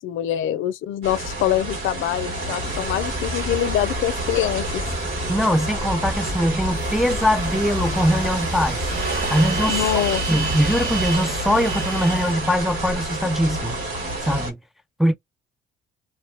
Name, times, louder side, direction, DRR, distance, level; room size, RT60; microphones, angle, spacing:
voice 1, 0.0-4.8 9.7-10.2, left 12 dB, 80° left, 0.4 m, -24 dB
sound 1, 1.0-14.5, right 1 dB, 85° right, 1.5 m, -29 dB
sound 2, 2.6-11.1, equal, 20° right, 1.1 m, -32 dB
voice 2, 5.3-8.8 9.1-9.9 10.3-13.8 14.3-14.6 15.0-15.1, equal, ahead, 0.3 m, -22 dB
sound 3, 6.9-12.3, right 5 dB, 45° right, 1.3 m, -31 dB
2.6 x 2.1 x 3.2 m
cardioid pair, 90°, 20 cm